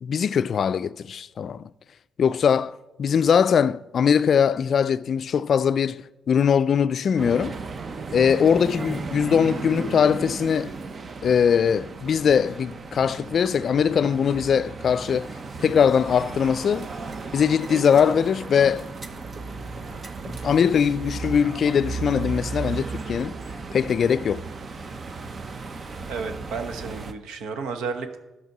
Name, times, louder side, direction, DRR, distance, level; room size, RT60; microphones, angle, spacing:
voice 1, 0.0-1.7 2.2-7.5 8.1-10.7 11.2-15.3 15.6-16.9 17.3-18.9 20.3-23.3 23.7-24.4, left 7 dB, 55° left, 0.3 m, -21 dB
sound 1, 7.2-27.1, right 4 dB, 40° right, 0.8 m, -35 dB
voice 2, 26.1-28.2, right 5 dB, 85° right, 1.1 m, -32 dB
12.5 x 6.0 x 5.9 m
cardioid pair, 90°, 0 cm